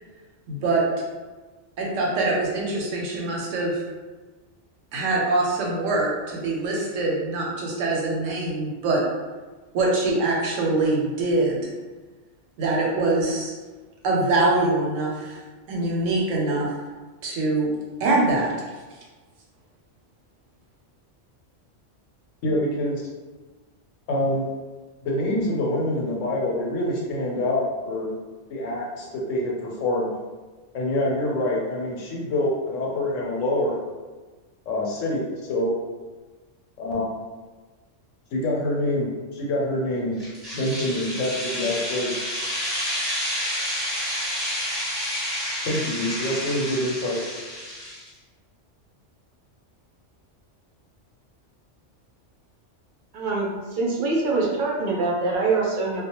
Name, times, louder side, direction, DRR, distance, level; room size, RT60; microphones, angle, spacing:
voice 1, 0.5-0.8 1.8-3.8 4.9-9.0 9.7-11.7 12.6-13.5 14.0-15.4 15.7-16.7 17.2-17.7 18.0-18.7, right 2 dB, 90° right, -3 dB, 1.0 m, -24 dB
voice 2, 22.4-23.0 24.1-24.5 25.0-28.1 28.5-30.1 30.7-33.8 34.7-35.7 36.8-37.1 38.3-40.1 40.5-42.1 45.6-47.2, left 1 dB, 85° left, -3 dB, 1.0 m, -26 dB
sound 1, 40.2-48.1, equal, 20° right, 0.8 m, -29 dB
voice 3, 53.1-56.0, right 3 dB, 55° right, -3 dB, 0.6 m, -24 dB
2.3 x 2.1 x 2.8 m, 1.3 s
omnidirectional pair, 1.3 m